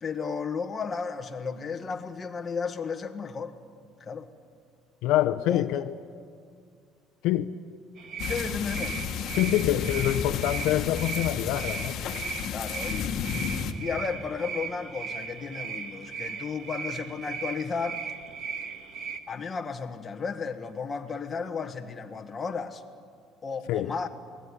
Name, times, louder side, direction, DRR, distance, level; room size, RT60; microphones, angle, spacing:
voice 1, 0.0-3.6 4.0-4.3 5.5-5.8 8.3-9.0 12.5-13.1 13.8-18.0 19.3-22.8 23.4-24.1, left 5 dB, 20° left, 1.5 m, -33 dB
voice 2, 5.0-5.9 7.2-7.6 9.4-12.2 23.7-23.9, left 13 dB, 70° left, 0.8 m, -26 dB
sound 1, 8.0-19.2, right 6 dB, 45° right, 2.0 m, -37 dB
sound 2, 8.2-13.7, left 7 dB, 50° left, 1.7 m, -32 dB
27.5 x 18.5 x 10.0 m
cardioid pair, 160°, 0 cm